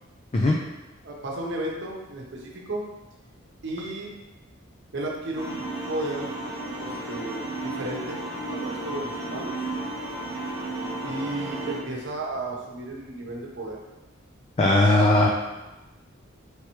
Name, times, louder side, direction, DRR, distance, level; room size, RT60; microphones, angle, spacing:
voice 1, 1.0-2.8 3.6-4.1 4.9-6.3 6.8-9.6 11.0-13.8, right 1 dB, 60° right, -1 dB, 0.9 m, -33 dB
sound 1, 5.4-11.8, right 2 dB, 20° right, 1.0 m, -33 dB
voice 2, 14.6-15.3, left 2 dB, 30° left, -1 dB, 0.4 m, -18 dB
4.5 x 3.4 x 3.0 m, 1.1 s
head